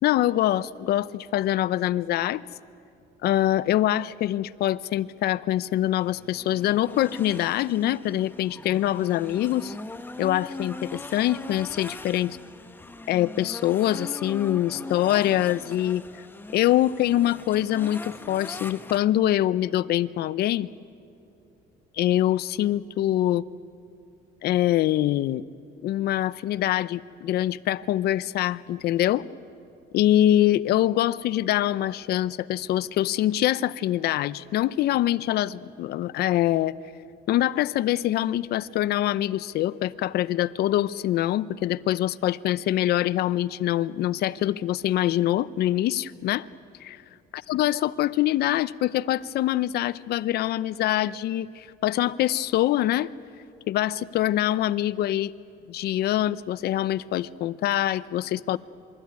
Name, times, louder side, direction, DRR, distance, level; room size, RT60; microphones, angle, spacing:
voice 1, 0.0-2.4 3.2-9.7 10.2-12.4 13.1-16.0 16.5-20.7 21.9-23.4 24.4-25.4 25.8-29.3 29.9-36.8 37.3-46.5 46.8-47.0 47.3-53.1 53.7-55.3 55.7-58.6, left 13 dB, 70° left, 17 dB, 0.7 m, -24 dB
sound 1, 5.8-19.0, left 2 dB, 10° left, 1.1 m, -40 dB
26.5 x 22.5 x 9.6 m, 2.7 s
cardioid pair, 110°, 17 cm